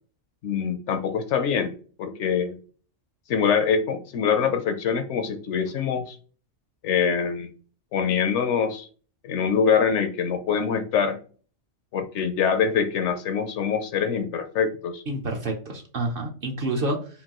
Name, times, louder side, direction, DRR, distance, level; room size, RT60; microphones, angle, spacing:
voice 1, 0.4-2.6 3.3-6.2 6.8-7.5 7.9-8.9 9.2-11.2 11.9-15.0, left 6 dB, 70° left, 7 dB, 0.8 m, -24 dB
voice 2, 15.1-17.1, right 2 dB, 50° right, 2 dB, 0.8 m, -28 dB
5.1 x 2.6 x 2.9 m, 0.40 s
omnidirectional pair, 1.3 m